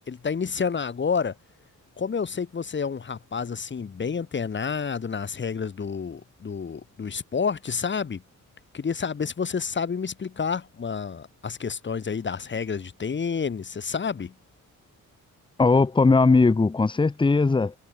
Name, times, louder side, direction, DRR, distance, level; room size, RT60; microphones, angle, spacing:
voice 1, 0.1-1.3 2.0-8.2 8.7-14.3, left 6 dB, 35° left, 2.0 m, -29 dB
voice 2, 15.6-17.7, left 3 dB, 15° left, 0.9 m, -19 dB
cardioid pair, 125°, 31 cm